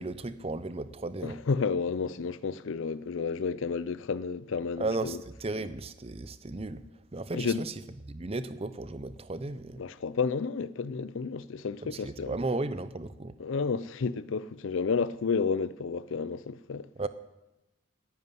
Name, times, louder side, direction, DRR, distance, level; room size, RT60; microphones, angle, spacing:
voice 1, 0.0-1.4 4.8-6.8 7.1-7.7 8.0-9.8 11.8-13.4 17.0-17.1, right 2 dB, 30° right, 0.6 m, -35 dB
voice 2, 1.2-5.2 7.3-7.6 9.8-12.4 13.4-16.9, left 5 dB, 65° left, 0.4 m, -31 dB
10.5 x 9.6 x 9.7 m
head